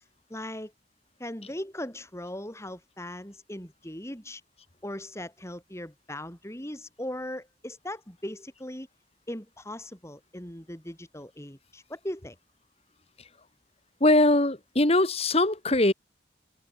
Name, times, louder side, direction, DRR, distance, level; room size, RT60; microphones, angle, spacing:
voice 1, 0.3-0.7 1.2-4.4 4.8-8.9 9.3-12.4, left 1 dB, 15° left, 5.4 m, -39 dB
voice 2, 14.0-15.9, left 2 dB, 35° left, 2.1 m, -21 dB
head